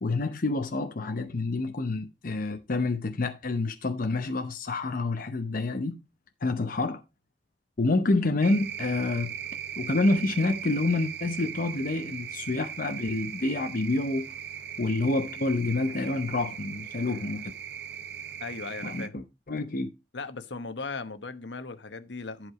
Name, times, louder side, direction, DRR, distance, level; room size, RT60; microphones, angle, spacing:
voice 1, 0.0-6.0 6.4-7.0 7.8-9.3 9.8-14.3 14.8-17.5 18.8-19.9, left 2 dB, 50° left, 0.7 m, -28 dB
sound 1, 8.4-19.1, right 9 dB, 65° right, 0.7 m, -38 dB
voice 2, 18.4-19.1 20.1-22.5, left 4 dB, 80° left, 1.1 m, -37 dB
11.0 x 4.9 x 4.7 m
head